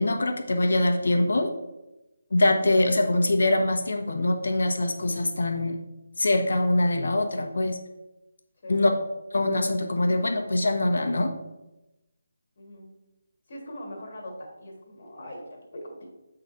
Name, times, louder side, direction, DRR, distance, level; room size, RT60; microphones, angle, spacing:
voice 1, 0.0-1.5 2.3-5.8 6.2-7.8 8.7-8.9 9.3-11.3, left 2 dB, 70° left, 4 dB, 1.1 m, -23 dB
voice 2, 12.6-13.0 13.5-16.1, equal, 40° left, 0 dB, 1.6 m, -41 dB
8.1 x 3.9 x 4.2 m, 0.99 s
hypercardioid pair, 175°, 0 cm